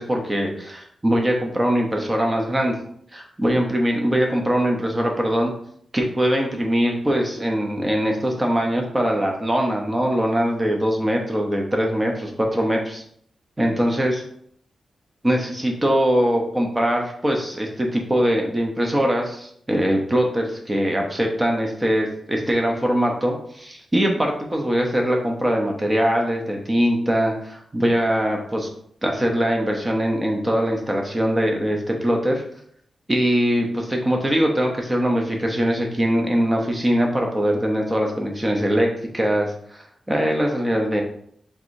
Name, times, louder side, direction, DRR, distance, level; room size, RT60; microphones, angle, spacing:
voice 1, 0.0-2.7 3.1-5.5 5.9-13.0 13.6-14.2 15.2-28.7 29.0-32.4 33.1-39.5 40.1-41.0, equal, 15° right, 1 dB, 0.7 m, -22 dB
4.7 x 3.6 x 2.6 m, 0.66 s
wide cardioid pair, 165°, 0 cm